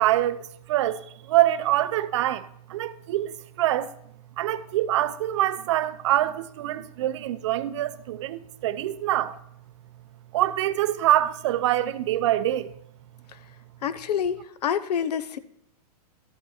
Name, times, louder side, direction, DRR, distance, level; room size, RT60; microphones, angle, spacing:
voice 1, 0.0-3.9 4.4-9.4 10.3-12.7, right 13 dB, 50° right, 0.5 m, -25 dB
voice 2, 13.8-15.4, left 8 dB, 85° left, 0.7 m, -28 dB
13.0 x 5.4 x 4.3 m
supercardioid pair, 160°, 20 cm